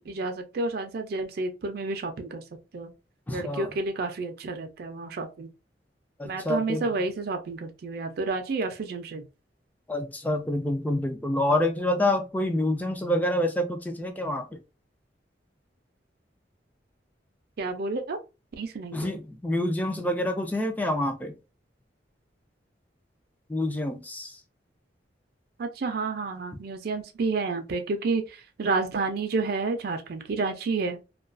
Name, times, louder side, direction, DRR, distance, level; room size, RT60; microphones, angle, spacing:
voice 1, 0.1-2.4 2.7-2.9 3.3-5.5 6.2-9.3 17.6-18.2 18.6-19.2 25.6-31.0, right 3 dB, 60° right, 0.4 m, -30 dB
voice 2, 3.3-3.7 6.2-6.8 9.9-14.6 18.9-21.3 23.5-24.3, left 1 dB, 10° left, 0.4 m, -27 dB
2.3 x 2.2 x 2.4 m
head